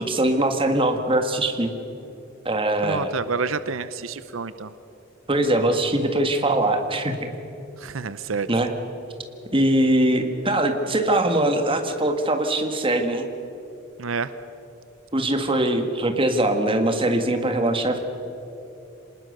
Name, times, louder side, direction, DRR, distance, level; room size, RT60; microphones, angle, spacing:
voice 1, 0.1-1.7 2.5-3.1 5.3-7.3 8.5-8.7 9.5-13.3 15.1-18.0, right 1 dB, 25° right, 6 dB, 1.8 m, -22 dB
voice 2, 2.8-4.7 7.8-8.5 14.0-14.3, right 5 dB, 90° right, 14 dB, 0.7 m, -28 dB
26.0 x 20.0 x 6.7 m, 3.0 s
head